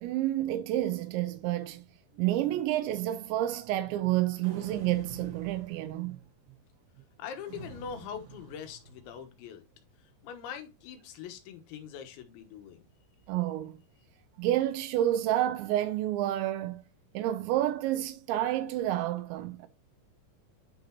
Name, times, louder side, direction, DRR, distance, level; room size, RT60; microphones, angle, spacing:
voice 1, 0.0-1.8 2.2-6.2 13.3-13.8 14.4-16.8 17.1-19.7, right 13 dB, 85° right, 2.9 m, -29 dB
sound 1, 4.4-6.3 7.4-9.3, right 4 dB, 65° right, 3.3 m, -48 dB
voice 2, 7.2-9.6 10.2-12.8, left 7 dB, 85° left, 3.5 m, -42 dB
10.5 x 3.9 x 2.9 m
omnidirectional pair, 5.2 m